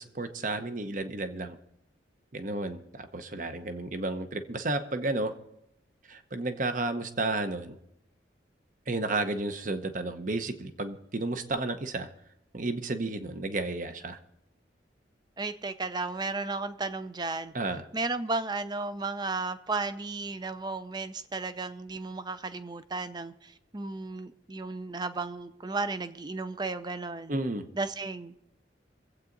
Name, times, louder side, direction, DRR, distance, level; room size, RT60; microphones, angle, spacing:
voice 1, 0.0-1.6 2.3-5.3 6.1-7.8 8.9-12.1 12.5-14.2 17.5-17.8 27.3-27.7, right 2 dB, 45° right, 0.9 m, -32 dB
voice 2, 15.4-17.5 17.9-27.3 27.8-28.5, right 3 dB, 25° right, 0.6 m, -34 dB
24.0 x 8.2 x 3.9 m
head